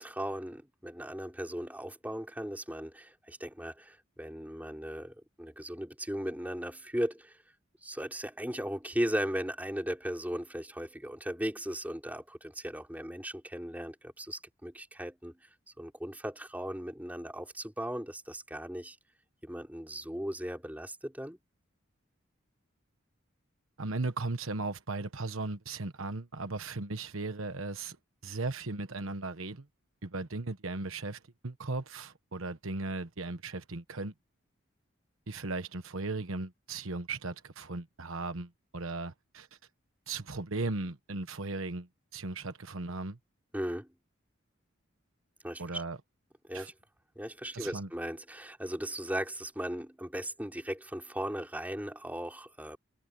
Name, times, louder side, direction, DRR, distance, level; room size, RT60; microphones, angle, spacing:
voice 1, 0.0-7.4 7.8-15.5 15.8-19.0 19.4-21.4 43.5-43.9 45.4-45.8 46.5-46.7 47.2-52.8, equal, 10° right, 3.9 m, -37 dB
voice 2, 23.8-28.0 28.2-29.7 30.0-34.1 35.3-39.5 40.1-43.2 45.6-46.0 46.5-46.7 47.5-47.9, right 3 dB, 85° right, 1.2 m, -37 dB
head